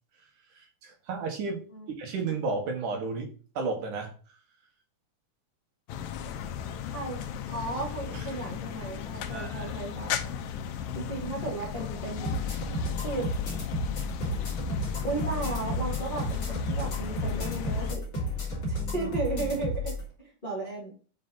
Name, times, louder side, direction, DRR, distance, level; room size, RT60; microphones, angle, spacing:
voice 1, 0.2-4.4 8.1-8.3 9.3-9.8 11.0-11.1 18.8-19.1, right 4 dB, 70° right, 2.9 m, -34 dB
sound 1, 5.9-18.0, left 8 dB, 90° left, 2.4 m, -36 dB
voice 2, 6.9-7.2 7.5-10.3 10.9-12.3 13.0-13.3 15.0-18.1 18.7-20.9, right 3 dB, 20° left, 1.8 m, -35 dB
sound 2, 12.2-20.0, left 1 dB, 40° left, 3.0 m, -32 dB
6.9 x 5.2 x 3.9 m
omnidirectional pair, 3.8 m